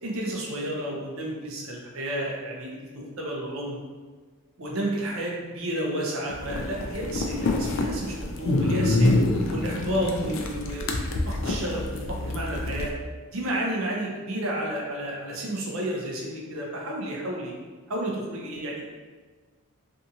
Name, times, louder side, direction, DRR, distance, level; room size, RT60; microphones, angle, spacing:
voice 1, 0.0-3.8 4.6-9.1 9.5-12.9 13.3-17.5 17.9-18.8, right 1 dB, 70° right, -3 dB, 0.6 m, -31 dB
sound 1, 6.3-12.9, left 2 dB, 60° left, 0.3 m, -26 dB
2.6 x 2.4 x 2.7 m, 1.4 s
head